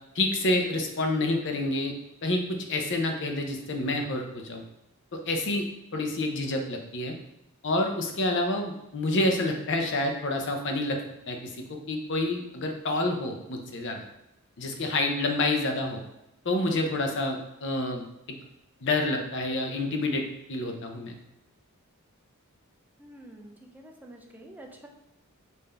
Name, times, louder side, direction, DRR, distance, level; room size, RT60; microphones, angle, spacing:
voice 1, 0.1-1.9 2.2-4.6 5.1-5.7 5.9-7.1 7.6-11.0 11.3-14.0 14.6-16.0 16.4-18.0 18.8-20.2 20.5-21.1, left 2 dB, 55° left, 3 dB, 0.7 m, -28 dB
voice 2, 23.0-24.9, right 1 dB, 10° right, 1 dB, 0.5 m, -48 dB
5.5 x 2.7 x 3.3 m, 0.87 s
head